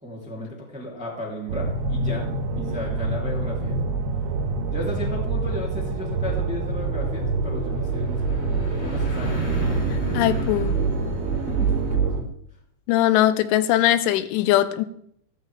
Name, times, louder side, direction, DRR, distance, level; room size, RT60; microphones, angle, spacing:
voice 1, 0.0-3.8 4.7-9.9 11.5-12.2, equal, ahead, 1.7 m, -35 dB
sound 1, 1.5-12.2, right 3 dB, 70° right, 5.6 m, -26 dB
sound 2, 6.1-11.9, equal, 35° left, 3.5 m, -35 dB
voice 2, 9.9-10.8 12.9-14.9, left 13 dB, 85° left, 3.0 m, -21 dB
14.5 x 14.0 x 3.4 m
omnidirectional pair, 5.5 m